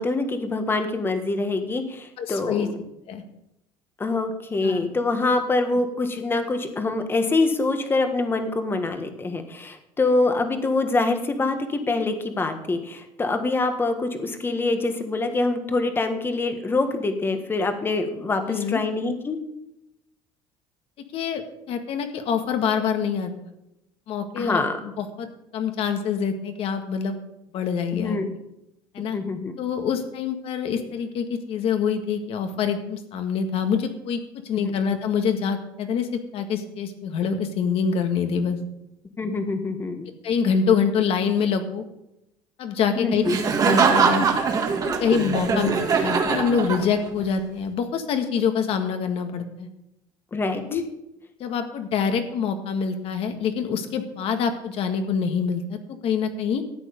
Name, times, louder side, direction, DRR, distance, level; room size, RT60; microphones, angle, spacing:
voice 1, 0.0-2.7 4.0-19.4 24.4-24.8 27.9-28.3 29.1-29.5 34.6-34.8 39.2-40.1 42.9-43.4 45.5-45.8 50.3-50.6, left 3 dB, 20° left, 7 dB, 1.4 m, -25 dB
voice 2, 2.2-2.7 3.1-3.2 4.6-4.9 18.5-18.8 21.1-21.4 21.7-23.3 24.1-25.3 25.5-27.2 27.5-28.2 28.9-29.2 29.6-38.6 40.2-41.8 42.6-43.2 43.6-44.3 44.8-49.7 50.7-50.8 51.4-56.6, left 6 dB, 50° left, 7 dB, 1.7 m, -25 dB
Laughter, 43.3-47.2, right 5 dB, 30° right, 1.5 m, -22 dB
13.0 x 9.1 x 5.2 m, 0.86 s
cardioid pair, 145°, 12 cm